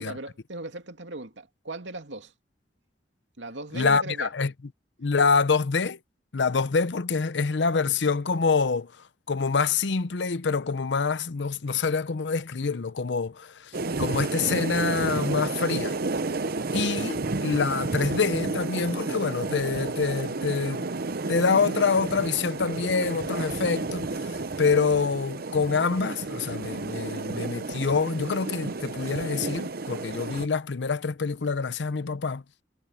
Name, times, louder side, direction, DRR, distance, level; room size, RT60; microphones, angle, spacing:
voice 1, 0.0-2.3 3.4-4.3, right 2 dB, 85° right, 2.5 m, -38 dB
voice 2, 3.7-4.5 5.0-6.0 6.3-8.9 9.3-16.0 16.7-20.9 21.3-32.4, left 5 dB, 75° left, 0.7 m, -26 dB
sound 1, 13.7-30.5, right 3 dB, 55° right, 0.8 m, -31 dB
head